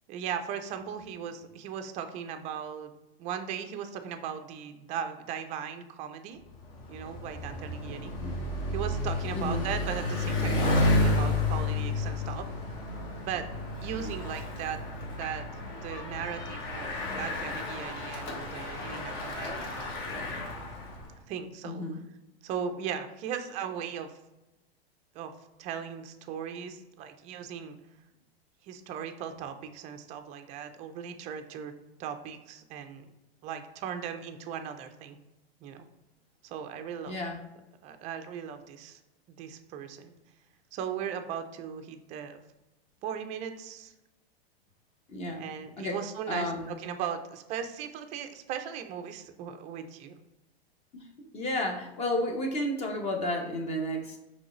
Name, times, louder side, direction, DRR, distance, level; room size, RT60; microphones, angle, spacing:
voice 1, 0.1-2.9 3.2-6.4 6.9-8.4 8.7-12.5 13.2-13.5 13.8-19.9 21.3-21.9 22.4-24.1 25.1-25.3 25.6-27.7 28.6-31.7 32.0-33.0 33.4-35.2 35.6-35.9 36.4-37.1 37.8-39.0 39.4-40.1 40.7-42.4 43.0-43.9 45.4-50.2, right 8 dB, 25° right, 7 dB, 0.3 m, -38 dB
Bicycle, 6.5-21.1, left 2 dB, 45° left, 1.1 m, -31 dB
voice 2, 9.3-9.7 14.0-14.1 21.6-22.0 37.0-37.4 45.1-45.4 45.8-46.0 46.3-46.7 50.9-54.2, left 1 dB, 20° left, 3 dB, 0.7 m, -32 dB
5.2 x 3.2 x 3.0 m, 0.99 s
supercardioid pair, 135°, 31 cm